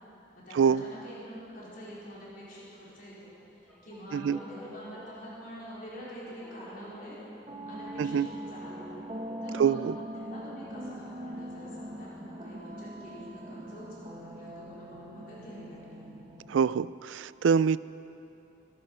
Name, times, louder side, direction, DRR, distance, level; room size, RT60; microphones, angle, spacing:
voice 1, 0.3-3.3 3.8-7.2 7.7-8.9 9.4-9.8 10.1-16.1, equal, 50° left, -8 dB, 4.6 m, -46 dB
sound 1, 3.6-10.4, equal, 5° left, 2.5 m, -52 dB
sound 2, 7.5-16.5, right 1 dB, 30° right, 1.6 m, -42 dB
voice 2, 9.6-9.9 16.5-17.8, right 7 dB, 85° right, 18 dB, 0.3 m, -25 dB
22.5 x 11.5 x 5.5 m, 2.9 s
head